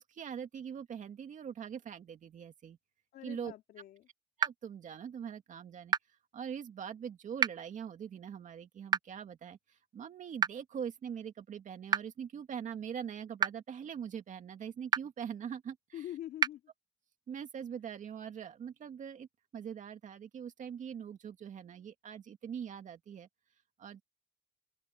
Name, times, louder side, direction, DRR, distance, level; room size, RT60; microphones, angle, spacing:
voice 1, 0.0-2.8 3.2-3.5 4.4-5.9 6.3-16.1 17.3-19.3 19.5-23.3 23.8-24.0, right 8 dB, 45° right, 2.2 m, -42 dB
voice 2, 3.1-4.1 15.9-16.6, left 12 dB, 70° left, 2.6 m, -44 dB
sound 1, 4.4-4.5 5.9-6.0 7.4-7.5 8.9-9.0 10.4-10.5 11.9-12.0 13.4-13.5 14.9-15.0 16.4-16.5, right 7 dB, 25° right, 0.3 m, -27 dB
open air
cardioid pair, 110°, 17 cm